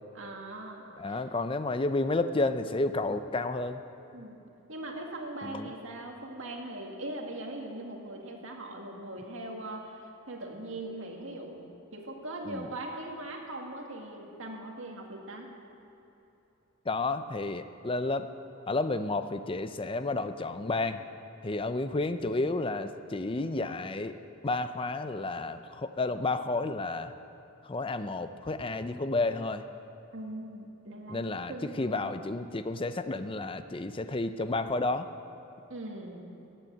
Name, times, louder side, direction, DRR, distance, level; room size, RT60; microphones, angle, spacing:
voice 1, 0.1-1.2 4.1-4.4 4.7-11.7 11.9-15.5 30.1-32.1 35.7-36.3, right 1 dB, 65° right, 0 dB, 2.1 m, -40 dB
voice 2, 1.0-3.8 5.4-5.7 12.5-12.7 16.9-18.3 18.7-21.0 21.4-24.2 24.4-27.1 27.6-29.7 31.1-35.1, left 2 dB, 25° left, 10 dB, 0.5 m, -31 dB
15.0 x 8.9 x 9.0 m, 2.9 s
head